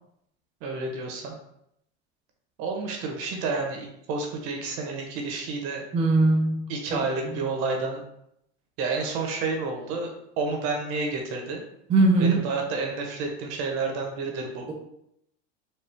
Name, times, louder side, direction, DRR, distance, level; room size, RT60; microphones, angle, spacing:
voice 1, 0.6-1.3 2.6-5.8 6.7-8.0 8.8-11.6 12.2-14.7, right 3 dB, 55° right, 2 dB, 1.1 m, -30 dB
voice 2, 5.9-6.6 6.9-7.0 7.2-7.4 11.9-12.4, right 2 dB, 20° right, -1 dB, 0.5 m, -20 dB
4.4 x 2.3 x 3.4 m, 0.76 s
supercardioid pair, 135°, 33 cm